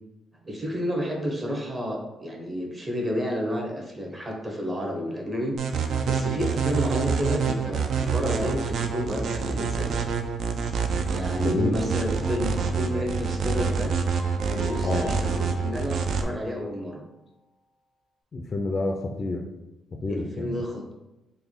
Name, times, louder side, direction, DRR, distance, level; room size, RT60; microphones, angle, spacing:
voice 1, 0.4-5.6 6.1-10.0 11.1-13.9 14.4-17.0 20.1-21.0, equal, 25° right, 0 dB, 0.8 m, -31 dB
sound 1, 5.6-16.2, right 5 dB, 65° right, 0.3 m, -27 dB
voice 2, 11.3-11.8 14.8-15.2 18.3-19.5 20.0-20.6, left 2 dB, 40° left, 2 dB, 0.4 m, -28 dB
Keyboard (musical), 11.7-16.7, right 1 dB, 50° right, 0.8 m, -39 dB
3.3 x 2.2 x 3.6 m, 0.96 s
cardioid pair, 90°, 0 cm